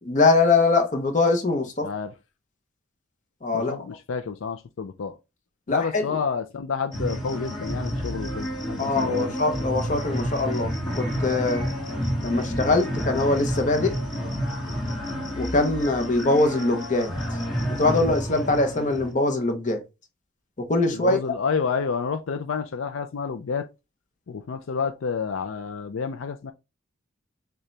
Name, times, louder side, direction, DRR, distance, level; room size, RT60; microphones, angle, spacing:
voice 1, 0.0-1.9 3.4-3.8 5.7-6.1 8.8-11.7 12.2-13.9 15.4-17.1 17.8-19.8 20.6-21.2, left 3 dB, 35° left, 0.8 m, -22 dB
voice 2, 1.8-2.1 3.5-5.2 5.7-9.3 20.9-23.7 24.3-26.5, left 5 dB, 75° left, 0.4 m, -29 dB
sound 1, 6.9-19.1, equal, 20° left, 1.5 m, -30 dB
6.5 x 2.3 x 3.2 m
head